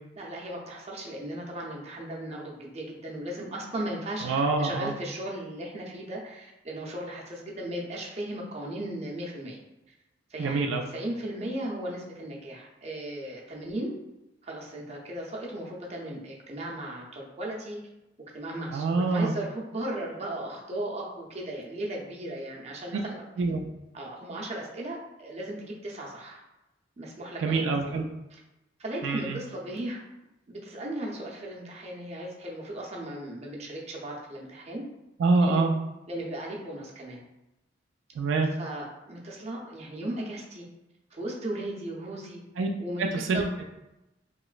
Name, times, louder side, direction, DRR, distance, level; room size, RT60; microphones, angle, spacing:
voice 1, 0.1-9.6 10.3-13.9 14.4-17.8 18.3-23.2 23.9-26.4 27.0-28.0 28.3-28.4 28.8-30.0 30.5-34.8 35.4-35.6 36.1-37.2 38.6-40.7 41.1-42.4 42.8-43.5, right 1 dB, 35° right, -2 dB, 0.6 m, -36 dB
voice 2, 4.2-4.9 10.4-10.8 18.7-19.3 23.4-23.7 27.4-28.1 29.0-29.4 35.2-35.7 38.2-38.5 42.6-42.7 43.1-43.6, right 3 dB, 85° right, 2 dB, 0.3 m, -25 dB
3.0 x 3.0 x 2.4 m, 0.95 s
head